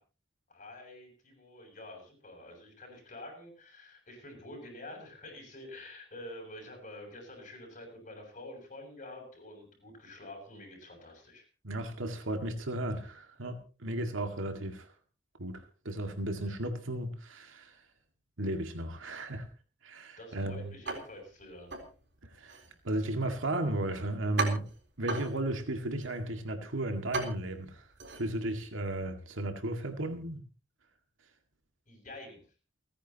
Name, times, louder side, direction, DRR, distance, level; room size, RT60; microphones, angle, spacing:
voice 1, 0.5-11.5 20.2-21.8 31.9-32.4, left 1 dB, 40° left, 2 dB, 7.6 m, -48 dB
voice 2, 11.6-14.9 15.4-17.8 18.4-19.5 19.8-20.7 22.3-24.7 25.0-27.9 28.2-30.4, right 1 dB, 90° right, 5 dB, 2.0 m, -34 dB
sound 1, 20.8-29.1, right 3 dB, 60° right, 3.8 m, -40 dB
30.0 x 10.0 x 3.0 m, 0.35 s
head